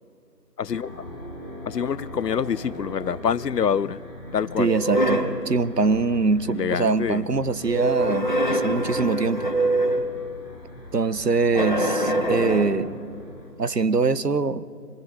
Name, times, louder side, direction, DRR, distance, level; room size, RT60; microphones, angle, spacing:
voice 1, 0.6-0.9 1.7-4.0 4.3-4.7 6.5-7.3, left 7 dB, 75° left, 0.6 m, -26 dB
sound 1, 0.7-13.5, left 1 dB, 5° right, 1.9 m, -41 dB
sound 2, 4.6-5.4 7.6-10.1 11.5-12.9, right 1 dB, 30° left, 1.3 m, -24 dB
voice 2, 4.6-9.5 10.9-13.0 13.6-14.6, right 4 dB, 75° right, 1.1 m, -23 dB
25.0 x 19.0 x 5.7 m
figure-of-eight pair, 170°, 48 cm